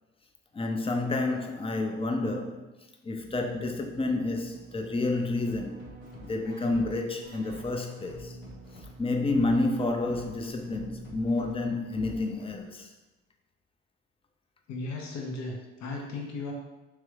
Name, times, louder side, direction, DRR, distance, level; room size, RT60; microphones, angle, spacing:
voice 1, 0.5-2.7 3.0-5.8 6.2-8.4 9.0-12.9, left 2 dB, 20° left, 0.5 m, -29 dB
Keyboard (musical), 3.2-11.9, right 2 dB, 35° right, 0.5 m, -49 dB
sound 1, 5.1-12.6, left 1 dB, 80° left, 1.1 m, -49 dB
voice 2, 14.7-16.5, left 3 dB, 60° left, 0.8 m, -36 dB
3.1 x 3.0 x 2.3 m
hypercardioid pair, 50°, 31 cm